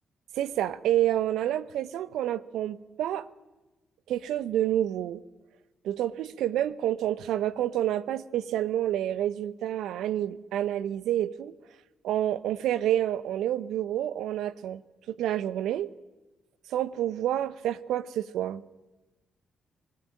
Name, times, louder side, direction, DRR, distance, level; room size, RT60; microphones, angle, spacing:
voice 1, 0.4-3.2 4.1-5.2 5.8-11.5 12.0-14.8 15.1-15.9 16.7-18.6, right 12 dB, 75° right, 15 dB, 0.9 m, -28 dB
25.0 x 20.5 x 8.8 m, 1.1 s
hypercardioid pair, 40°, 0 cm